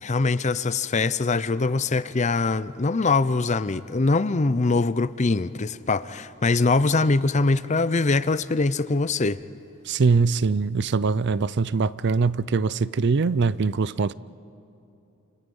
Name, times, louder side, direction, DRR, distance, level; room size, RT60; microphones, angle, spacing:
voice 1, 0.0-9.4, left 3 dB, 35° left, 0.6 m, -23 dB
voice 2, 9.9-14.1, right 4 dB, 55° right, 0.5 m, -22 dB
29.0 x 28.0 x 5.5 m
head